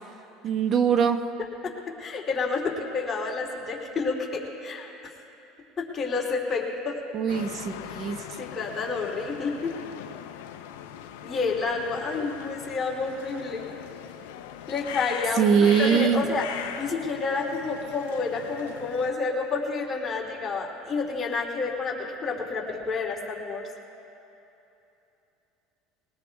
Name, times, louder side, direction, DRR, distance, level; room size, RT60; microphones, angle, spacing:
voice 1, 0.4-1.2 7.1-8.2 15.3-16.3, right 7 dB, 50° right, 8 dB, 0.8 m, -22 dB
voice 2, 2.0-5.0 5.8-6.9 8.4-9.7 11.2-13.7 14.7-16.4 16.8-23.6, left 4 dB, 30° left, -2 dB, 2.9 m, -29 dB
sound 1, 7.3-19.1, left 10 dB, 90° left, 0.7 m, -40 dB
21.0 x 20.0 x 2.4 m, 2.9 s
supercardioid pair, 100°, 0 cm